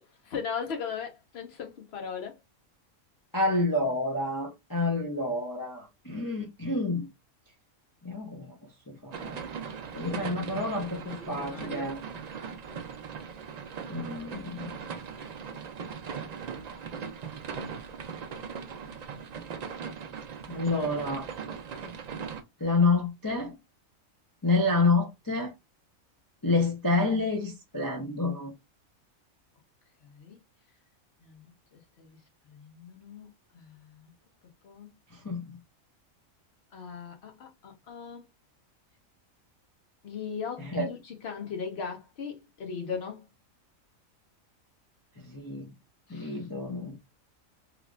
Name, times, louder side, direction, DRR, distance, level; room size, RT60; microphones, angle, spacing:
voice 1, 0.0-2.4 9.9-11.9 30.0-30.4 31.2-32.2 32.4-33.3 33.5-34.1 34.6-34.9 36.7-38.3 40.0-43.3 46.1-46.5, left 6 dB, 55° left, 1.1 m, -39 dB
voice 2, 3.3-7.1 8.0-8.5 8.9-9.5 9.9-12.0 13.9-14.7 20.5-21.3 22.6-23.5 24.4-25.5 26.4-28.5 35.1-35.6 40.6-40.9 45.2-45.7 46.1-47.0, left 3 dB, 25° left, 0.5 m, -28 dB
sound 1, 9.1-22.4, right 6 dB, 90° right, 0.3 m, -39 dB
3.5 x 3.1 x 2.4 m
omnidirectional pair, 1.4 m